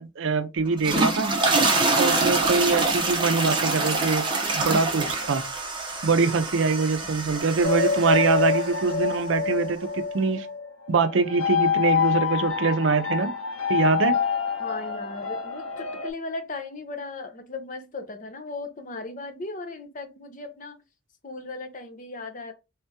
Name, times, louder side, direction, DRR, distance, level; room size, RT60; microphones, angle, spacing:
voice 1, 0.0-1.3 2.0-4.3 4.5-5.4 6.0-10.5 10.9-13.3 13.7-14.2, right 4 dB, 65° right, 0.5 m, -23 dB
sound 1, 0.7-9.0, right 3 dB, 20° right, 0.7 m, -25 dB
sound 2, 7.6-16.1, left 6 dB, 85° left, 1.0 m, -26 dB
voice 2, 14.6-20.8 21.2-22.5, left 3 dB, 40° left, 0.7 m, -37 dB
3.5 x 3.4 x 2.8 m
head